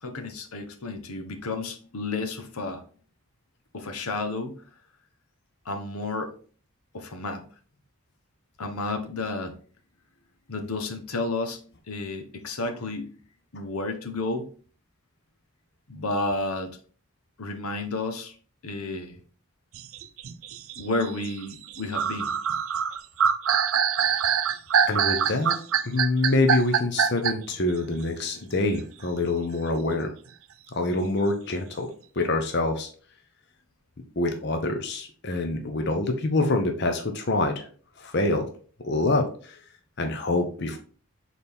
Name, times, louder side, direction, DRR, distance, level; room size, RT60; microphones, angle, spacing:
voice 1, 0.0-2.8 3.7-4.6 5.6-6.3 6.9-7.4 8.6-9.5 10.5-11.6 11.9-13.1 13.5-14.5 15.9-16.8 17.4-18.3 18.6-19.2 20.8-22.3, left 2 dB, 90° left, 6 dB, 1.1 m, -31 dB
sound 1, 19.7-27.5, right 7 dB, 75° right, 0.6 m, -24 dB
voice 2, 24.9-25.6 25.8-30.1 30.7-31.9 32.2-32.9 34.2-37.7 38.0-38.5 38.8-39.6 40.0-40.8, left 2 dB, 50° left, 5 dB, 0.8 m, -26 dB
6.4 x 4.1 x 3.5 m, 0.42 s
head